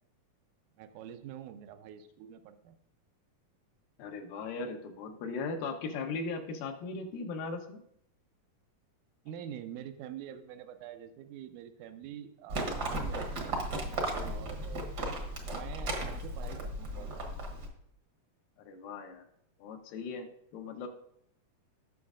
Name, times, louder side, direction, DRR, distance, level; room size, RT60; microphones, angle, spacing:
voice 1, 0.8-2.8 9.3-13.6 14.2-14.9 15.4-17.2, right 10 dB, 80° right, 9 dB, 2.0 m, -46 dB
voice 2, 4.0-7.8 14.2-14.4 18.6-19.2 19.6-20.3 20.5-20.9, left 4 dB, 85° left, 4 dB, 2.7 m, -38 dB
Livestock farm animals working animals, 12.5-17.7, right 1 dB, 55° right, 1.1 m, -35 dB
17.0 x 6.3 x 2.5 m, 0.75 s
omnidirectional pair, 3.9 m